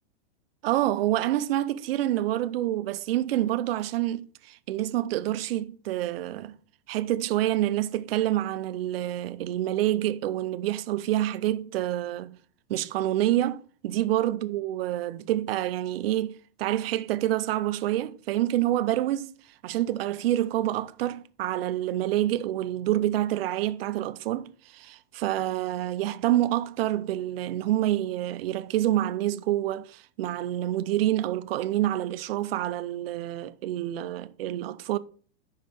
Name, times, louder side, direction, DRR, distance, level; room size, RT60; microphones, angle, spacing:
voice 1, 0.6-6.6 6.9-12.4 12.7-19.3 19.6-35.0, right 13 dB, 60° right, 0.6 m, -27 dB
5.5 x 5.2 x 5.4 m
supercardioid pair, 175°, 34 cm